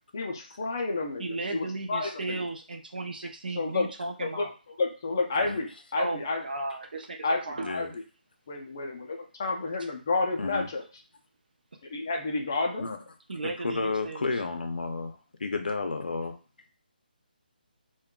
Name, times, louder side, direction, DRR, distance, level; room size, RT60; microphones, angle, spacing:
voice 1, 0.1-1.2 1.5-2.4 3.5-3.9 4.2-4.5 4.8-6.4 7.2-7.4 7.7-7.9 8.5-10.8 11.9-12.9, left 3 dB, 20° left, 2 dB, 0.4 m, -30 dB
voice 2, 1.2-4.5 6.0-7.7 13.3-14.4, right 2 dB, 65° right, 4 dB, 0.6 m, -35 dB
voice 3, 7.6-7.9 10.4-10.7 12.8-13.0 13.6-16.4, left 3 dB, 70° left, 6 dB, 0.5 m, -32 dB
3.6 x 2.2 x 2.2 m, 0.36 s
hypercardioid pair, 175°, 5 cm